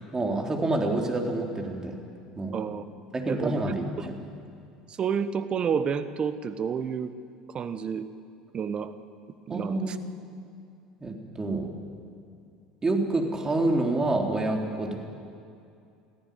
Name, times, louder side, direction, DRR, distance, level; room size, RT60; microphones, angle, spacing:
voice 1, 0.1-2.0 2.4-2.6 3.1-4.2 9.5-10.0 11.0-11.7 12.8-15.0, right 2 dB, 20° right, 2 dB, 3.6 m, -27 dB
voice 2, 2.5-2.8 3.3-3.6 4.9-7.1 7.5-8.1 8.5-8.9 9.5-9.9, right 7 dB, 35° right, 12 dB, 1.3 m, -30 dB
22.0 x 15.0 x 9.4 m, 2.5 s
hypercardioid pair, 75°, 3 cm